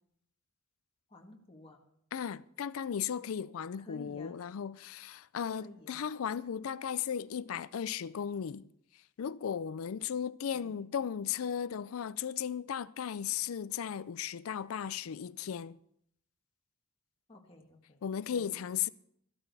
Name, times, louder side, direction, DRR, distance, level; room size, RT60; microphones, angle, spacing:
voice 1, 1.1-1.8 3.8-4.3 5.6-6.0 10.5-10.8 17.3-18.0 18.3-18.5, left 1 dB, 25° left, 1.5 m, -52 dB
voice 2, 2.1-8.6 9.2-15.8 18.0-18.9, left 8 dB, 85° left, 0.4 m, -36 dB
13.5 x 13.0 x 4.1 m
head